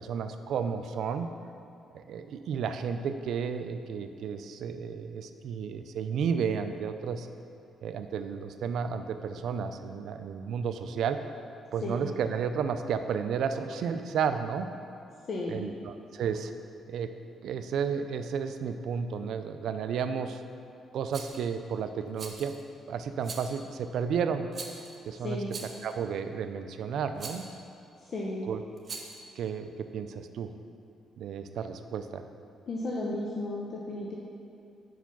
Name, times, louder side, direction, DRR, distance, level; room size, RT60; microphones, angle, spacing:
voice 1, 0.0-1.3 1.9-7.3 7.8-11.2 11.7-14.7 15.5-16.5 16.9-17.1 17.4-20.4 20.9-22.5 22.9-24.5 25.1-25.4 25.8-27.5 28.5-28.6 29.4-30.5 31.2-32.2, right 6 dB, 70° right, 9 dB, 0.4 m, -32 dB
voice 2, 15.3-15.8 25.2-25.5 28.0-28.5 32.7-34.1, left 2 dB, 50° left, -3 dB, 0.7 m, -34 dB
Rattle, 21.1-21.4 22.2-22.6 23.2-23.6 24.5-25.0 25.5-25.9 27.2-27.5 28.8-29.2, right 4 dB, 45° right, 0.8 m, -42 dB
5.6 x 4.7 x 5.9 m, 2.6 s
cardioid pair, 90°, 0 cm